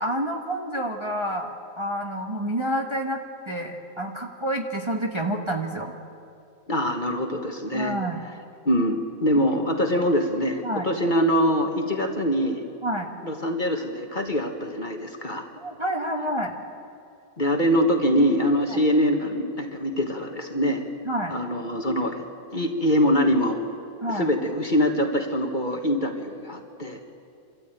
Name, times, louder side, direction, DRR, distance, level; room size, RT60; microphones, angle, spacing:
voice 1, 0.0-5.9 7.7-8.2 10.6-10.9 12.8-13.1 15.6-16.5 18.7-18.8 21.0-21.4 24.0-24.3, right 1 dB, 20° right, 1 dB, 1.3 m, -28 dB
voice 2, 6.7-7.9 8.6-12.6 13.2-15.4 17.4-20.8 21.3-22.2 22.5-23.6 24.1-27.0, equal, 35° left, 4 dB, 1.5 m, -24 dB
25.5 x 13.5 x 9.0 m, 2.6 s
omnidirectional pair, 1.5 m